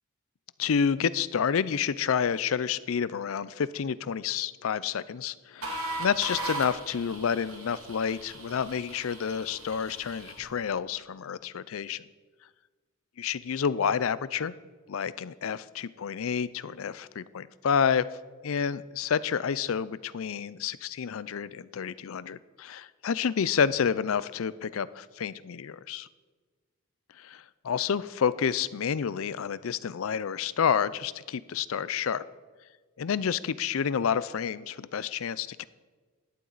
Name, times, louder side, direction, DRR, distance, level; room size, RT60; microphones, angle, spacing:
voice 1, 0.6-12.0 13.2-14.5 14.9-18.1 18.4-26.1 27.6-32.2 33.0-35.6, left 7 dB, 75° left, 17 dB, 0.4 m, -29 dB
sound 1, 5.6-10.5, right 2 dB, 85° right, 2.5 m, -38 dB
17.0 x 11.5 x 4.0 m, 1.4 s
head